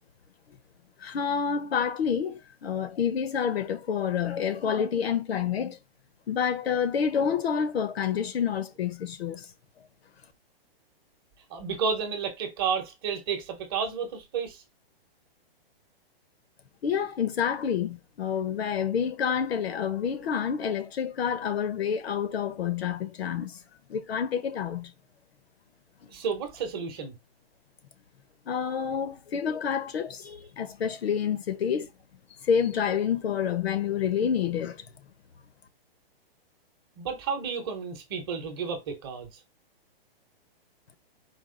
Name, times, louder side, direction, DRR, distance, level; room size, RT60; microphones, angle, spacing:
voice 1, 1.0-5.8 6.3-9.5 16.8-23.6 23.9-24.9 28.5-31.9 32.4-34.8, left 7 dB, 85° left, 0.9 m, -28 dB
voice 2, 11.5-14.6 26.1-27.1 37.0-39.4, right 6 dB, 25° right, 0.8 m, -31 dB
4.7 x 2.4 x 3.7 m
hypercardioid pair, 175°, 30 cm